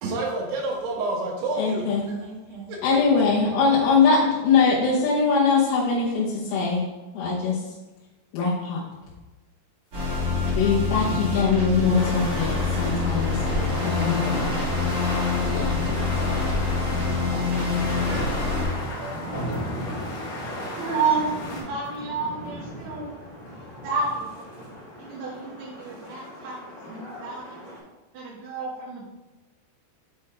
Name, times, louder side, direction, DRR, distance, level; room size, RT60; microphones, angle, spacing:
voice 1, 0.0-2.8 3.8-3.9, right 2 dB, 85° right, -2 dB, 3.4 m, -29 dB
voice 2, 1.6-2.1 2.8-6.9 7.1-7.6 8.3-8.8 10.5-14.5 15.5-15.8, left 5 dB, 75° left, -6 dB, 2.8 m, -22 dB
sound 1, 9.9-18.6, left 4 dB, 45° right, 1.3 m, -25 dB
sound 2, 10.6-27.8, equal, 35° left, 2.1 m, -40 dB
sound 3, 11.9-21.6, left 1 dB, 55° left, 2.5 m, -34 dB
voice 3, 18.9-19.5 19.9-20.0 20.8-23.1 23.5-24.6 25.0-26.6 26.8-27.8 28.1-29.0, right 4 dB, 60° right, -6 dB, 2.1 m, -31 dB
7.7 x 3.9 x 4.3 m, 1.1 s
omnidirectional pair, 4.5 m